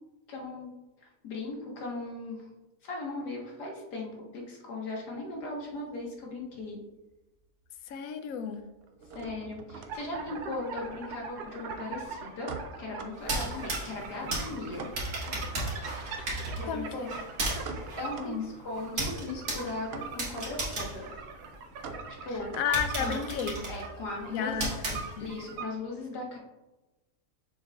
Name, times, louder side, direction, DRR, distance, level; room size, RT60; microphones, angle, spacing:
voice 1, 0.3-0.7 1.0-2.5 2.8-6.8 9.2-14.9 16.6-17.1 17.6-21.1 22.2-22.5 23.0-23.2 23.7-24.7 25.2-26.4, left 2 dB, 85° left, -2 dB, 1.9 m, -38 dB
sound 1, 5.2-6.8 7.1-7.8 8.0-25.1, right 3 dB, 65° right, 0.6 m, -47 dB
voice 2, 7.9-8.6 16.6-17.1 18.2-18.4 22.5-23.6 24.3-24.7 25.2-25.3, left 7 dB, 70° left, 9 dB, 0.9 m, -32 dB
sound 2, 9.9-25.7, right 5 dB, 80° right, 1.2 m, -42 dB
sound 3, 13.2-21.9 22.3-22.4 22.7-25.5, right 2 dB, 50° right, 1.9 m, -35 dB
6.9 x 6.3 x 2.3 m, 1.1 s
omnidirectional pair, 1.7 m